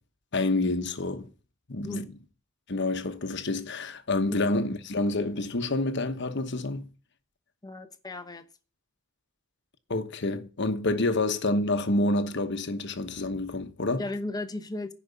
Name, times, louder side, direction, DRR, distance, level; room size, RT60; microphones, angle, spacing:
voice 1, 0.3-1.3 1.7-2.1 2.7-6.9 9.9-14.0, left 2 dB, 60° left, 1.2 m, -28 dB
voice 2, 7.6-8.4 14.0-14.9, left 2 dB, 20° left, 1.0 m, -35 dB
10.5 x 5.2 x 8.4 m
head